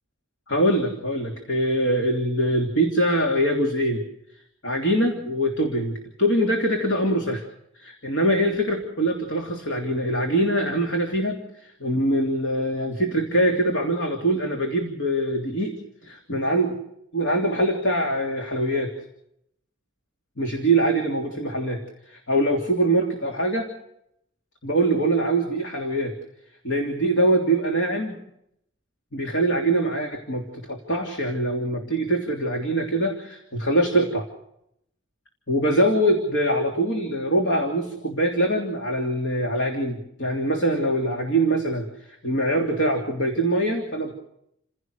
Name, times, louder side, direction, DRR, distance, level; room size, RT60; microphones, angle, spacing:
voice 1, 0.5-4.0 4.6-7.4 7.7-15.8 16.0-16.8 17.1-18.9 20.4-21.8 22.1-23.7 24.6-26.1 26.6-28.2 29.1-34.3 35.5-44.1, right 1 dB, 75° left, 2 dB, 3.1 m, -23 dB
29.5 x 16.0 x 6.6 m, 0.77 s
head